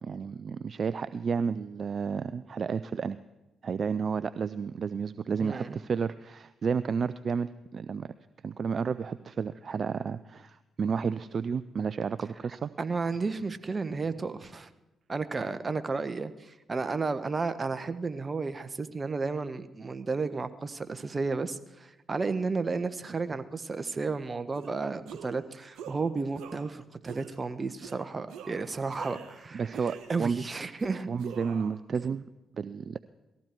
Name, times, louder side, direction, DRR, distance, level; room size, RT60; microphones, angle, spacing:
voice 1, 0.0-3.2 3.6-8.1 8.4-12.7 29.5-30.4 31.1-32.2 32.6-33.0, right 6 dB, 55° right, 15 dB, 0.5 m, -31 dB
voice 2, 5.4-5.8 12.8-14.7 15.1-29.8 30.1-31.1 31.9-32.0, right 4 dB, 35° right, 12 dB, 1.2 m, -33 dB
sound 1, 24.5-24.7 25.1-25.4 25.8-26.0 26.4-26.7 27.1-27.4 27.8-28.0 28.3-29.4 29.7-30.4 30.8-31.8, right 7 dB, 75° right, 1.4 m, -45 dB
19.0 x 14.5 x 4.6 m, 1.0 s
hypercardioid pair, 45°, 0 cm